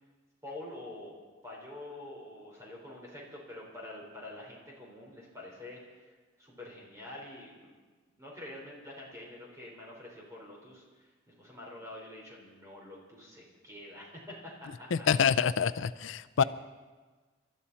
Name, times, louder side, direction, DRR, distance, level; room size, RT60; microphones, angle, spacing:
voice 1, 0.4-1.1 1.4-7.7 8.2-15.1 16.4-16.5, left 1 dB, 15° right, -3 dB, 4.6 m, -47 dB
voice 2, 14.9-16.4, left 7 dB, 80° left, 13 dB, 0.5 m, -26 dB
27.0 x 12.5 x 4.3 m, 1.4 s
head